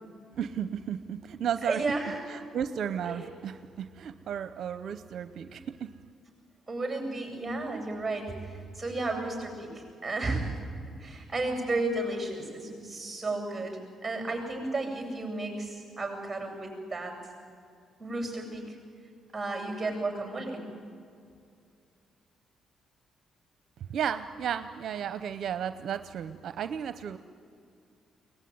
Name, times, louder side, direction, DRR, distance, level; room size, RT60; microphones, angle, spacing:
voice 1, 0.3-1.8 2.3-5.9 23.9-27.2, right 8 dB, 65° right, 10 dB, 0.7 m, -34 dB
voice 2, 1.6-2.2 3.0-3.2 6.7-10.6 11.0-17.1 18.0-18.8 19.3-20.7, right 2 dB, 15° right, 2 dB, 7.8 m, -33 dB
23.0 x 19.0 x 9.6 m, 2.3 s
cardioid pair, 90°, 0 cm